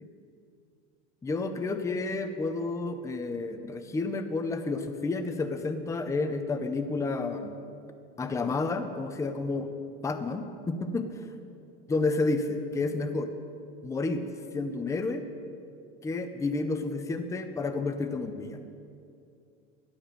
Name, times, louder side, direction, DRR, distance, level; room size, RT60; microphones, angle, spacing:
voice 1, 1.2-7.5 8.2-9.7 10.0-11.1 11.9-13.3 13.8-14.3 14.5-15.2 16.0-18.6, left 3 dB, 10° left, 8 dB, 0.6 m, -30 dB
12.0 x 11.5 x 6.6 m, 2.5 s
cardioid pair, 150°, 32 cm